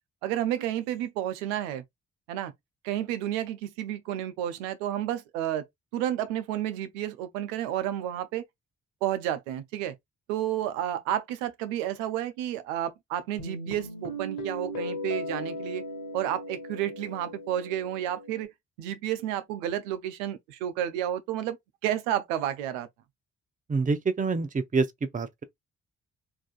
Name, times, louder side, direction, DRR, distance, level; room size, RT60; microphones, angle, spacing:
voice 1, 0.2-1.8 2.3-2.5 2.8-5.6 5.9-8.4 9.0-9.9 10.3-15.8 16.1-18.5 18.8-21.6 21.8-22.9, right 11 dB, 90° right, 0.5 m, -31 dB
Guitar, 13.4-18.4, left 1 dB, 70° left, 1.4 m, -37 dB
voice 2, 23.7-25.4, right 4 dB, 20° right, 0.6 m, -27 dB
3.4 x 2.5 x 2.3 m
hypercardioid pair, 40°, 37 cm